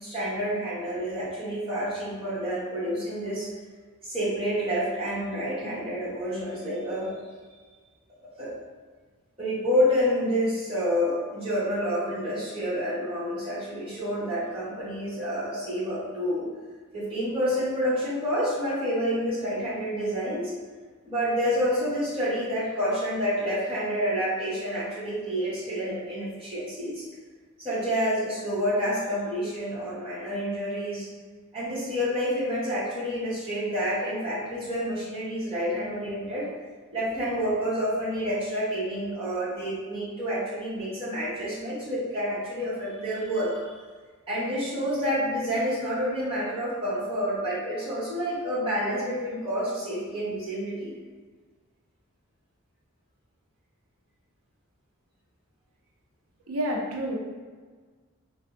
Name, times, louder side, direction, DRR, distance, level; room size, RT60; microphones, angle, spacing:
voice 1, 0.0-3.5 4.0-7.1 8.2-8.5 9.4-16.5 16.9-20.5 21.0-27.0 27.6-31.1 31.5-36.5 36.9-43.7 44.3-51.0, equal, 25° right, -11 dB, 1.0 m, -28 dB
voice 2, 56.5-57.2, equal, 80° right, -1 dB, 0.5 m, -29 dB
3.3 x 2.0 x 2.5 m, 1.5 s
head